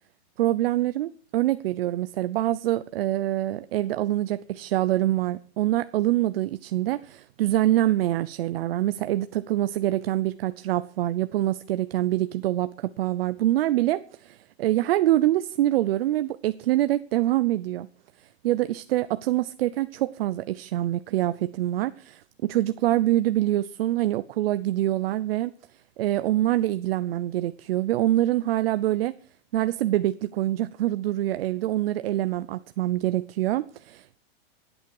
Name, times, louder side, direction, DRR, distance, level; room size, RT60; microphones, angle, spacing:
voice 1, 0.4-17.9 18.4-25.5 26.0-29.1 29.5-34.2, right 14 dB, 65° right, 0.7 m, -25 dB
26.0 x 9.0 x 4.7 m
supercardioid pair, 155°, 32 cm